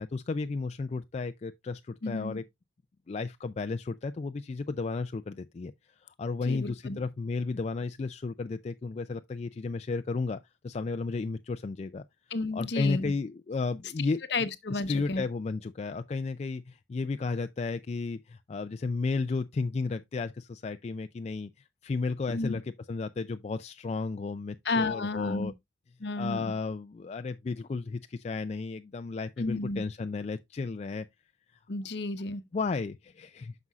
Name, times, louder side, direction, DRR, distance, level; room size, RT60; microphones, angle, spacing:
voice 1, 0.0-2.4 3.1-5.7 6.0-12.0 12.5-14.2 14.7-25.5 26.2-31.1 32.5-33.6, left 4 dB, 35° left, 0.3 m, -33 dB
voice 2, 2.0-2.4 6.5-7.0 12.3-13.1 14.3-15.2 22.3-22.6 24.7-25.5 26.0-26.5 29.4-29.8 31.7-32.4, left 3 dB, 65° left, 0.8 m, -32 dB
9.5 x 6.1 x 2.3 m
head